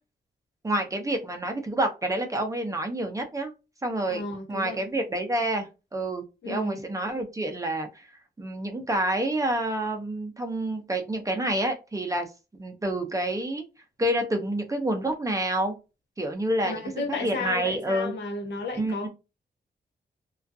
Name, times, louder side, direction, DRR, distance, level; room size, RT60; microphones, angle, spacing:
voice 1, 0.6-3.5 3.8-4.2 4.5-8.1 8.4-12.3 12.6-13.7 14.0-15.7 16.2-16.9 17.2-18.1 18.8-19.1, right 1 dB, 20° right, 0.5 m, -28 dB
voice 2, 4.1-4.8 6.4-6.8 16.6-19.1, left 3 dB, 80° left, 0.9 m, -33 dB
2.4 x 2.3 x 2.5 m
wide cardioid pair, 135°, 18 cm